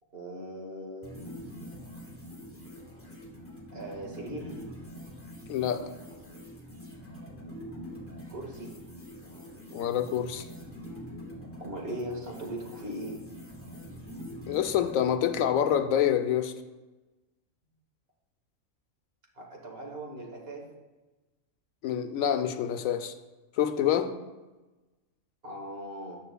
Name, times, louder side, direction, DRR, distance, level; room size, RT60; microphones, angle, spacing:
voice 1, 0.1-1.1 3.7-4.6 8.3-8.7 11.6-13.2 19.4-20.6 25.4-26.2, right 1 dB, 45° right, -1 dB, 2.0 m, -39 dB
sound 1, 1.0-15.8, equal, 10° left, 1.5 m, -45 dB
voice 2, 5.5-5.9 9.7-10.4 14.5-16.5 21.8-23.1 23.6-24.1, left 9 dB, 85° left, 8 dB, 1.1 m, -26 dB
13.5 x 9.4 x 2.3 m, 1.2 s
omnidirectional pair, 1.4 m